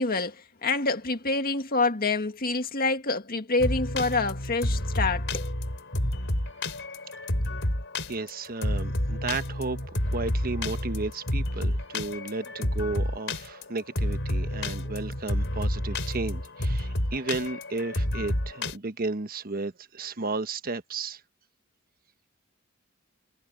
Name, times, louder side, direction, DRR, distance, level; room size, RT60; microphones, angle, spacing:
voice 1, 0.0-5.5, left 3 dB, 45° left, 2.0 m, -27 dB
sound 1, 3.6-18.8, left 1 dB, 65° left, 4.7 m, -29 dB
voice 2, 8.1-21.2, right 3 dB, 45° right, 1.2 m, -33 dB
head